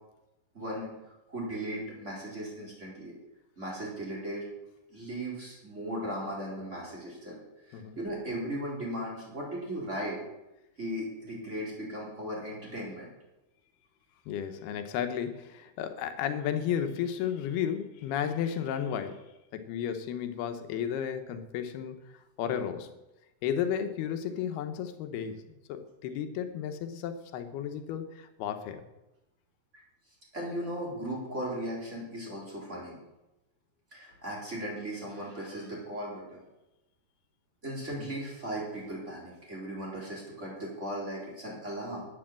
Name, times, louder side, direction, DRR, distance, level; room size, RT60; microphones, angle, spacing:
voice 1, 0.5-0.9 1.3-3.1 3.6-4.4 4.9-7.4 7.7-10.2 10.8-13.1 30.3-33.0 33.9-36.4 37.6-42.1, right 1 dB, 20° right, -4 dB, 4.0 m, -37 dB
voice 2, 14.3-22.0 22.4-22.9 23.4-28.8 38.0-38.1, left 9 dB, 80° left, 8 dB, 2.9 m, -33 dB
11.0 x 8.8 x 7.5 m, 0.97 s
omnidirectional pair, 4.5 m